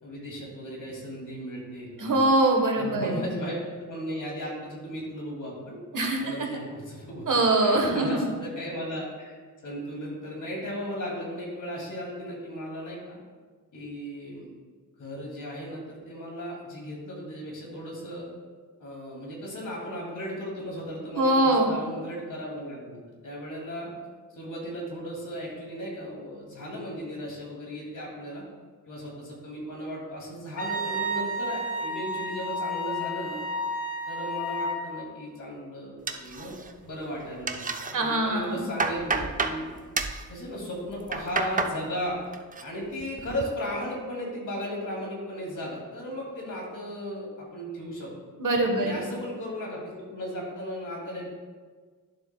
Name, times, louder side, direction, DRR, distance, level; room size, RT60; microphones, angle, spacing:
voice 1, 0.0-2.3 2.8-7.3 7.6-9.3 9.6-13.2 13.7-14.5 15.0-18.3 18.8-23.9 24.3-28.4 28.9-33.4 34.1-36.6 36.8-39.7 40.3-42.2 42.6-48.1 48.8-51.3, equal, 65° left, -3 dB, 2.5 m, -36 dB
voice 2, 2.0-3.2 5.9-6.5 7.3-8.2 21.1-21.7 37.9-38.6 48.4-49.0, right 2 dB, 70° right, 2 dB, 1.3 m, -23 dB
Wind instrument woodwind instrument, 30.6-34.8, equal, 45° left, 1.2 m, -31 dB
sound 1, 36.1-36.9 37.2-37.9 38.4-39.6 39.9-40.2 40.9-41.8 42.1-42.6 43.0-43.4, right 4 dB, 25° right, 0.5 m, -30 dB
11.5 x 7.2 x 2.3 m, 1.5 s
wide cardioid pair, 115°, 33 cm